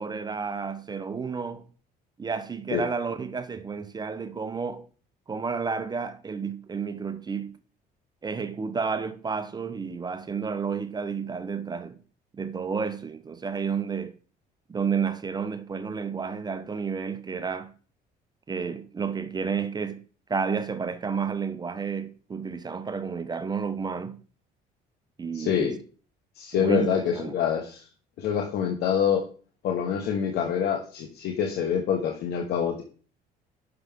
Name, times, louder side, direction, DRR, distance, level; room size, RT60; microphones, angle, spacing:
voice 1, 0.0-1.7 2.2-4.9 5.3-7.6 8.2-12.0 12.3-14.1 14.7-17.7 18.5-24.2 25.2-25.8 26.5-27.3, right 5 dB, 25° right, 0.7 m, -31 dB
voice 2, 25.3-25.7 26.3-27.9 28.2-29.3 29.6-32.8, left 8 dB, 75° left, 1.2 m, -26 dB
9.6 x 6.2 x 3.6 m
cardioid pair, 110°, 17 cm